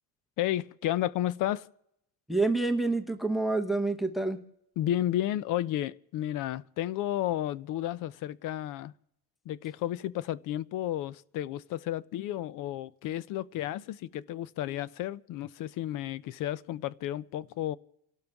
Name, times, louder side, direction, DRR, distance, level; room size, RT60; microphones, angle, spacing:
voice 1, 0.4-1.7 4.8-8.9 9.5-17.8, left 13 dB, 50° left, 0.5 m, -32 dB
voice 2, 2.3-4.4, right 3 dB, ahead, 0.7 m, -27 dB
29.5 x 12.0 x 3.5 m
cardioid pair, 160°, 42 cm